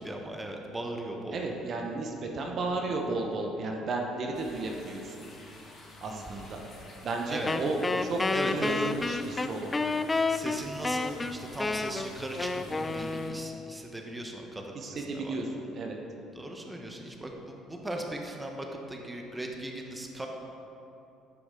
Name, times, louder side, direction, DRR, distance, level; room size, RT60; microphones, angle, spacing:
voice 1, 0.0-1.5 6.1-6.4 7.3-7.5 8.3-8.8 10.3-15.4 16.3-20.3, right 1 dB, 15° right, 2 dB, 1.0 m, -38 dB
voice 2, 1.3-5.2 6.0-6.6 7.0-9.7 14.7-16.0, right 2 dB, 55° right, 1 dB, 0.9 m, -33 dB
sound 1, 4.3-13.3, left 3 dB, 45° left, 1.6 m, -50 dB
Wind instrument woodwind instrument, 7.5-13.8, left 3 dB, 25° left, 0.3 m, -30 dB
10.5 x 4.8 x 3.8 m, 3.0 s
supercardioid pair, 65°, 0 cm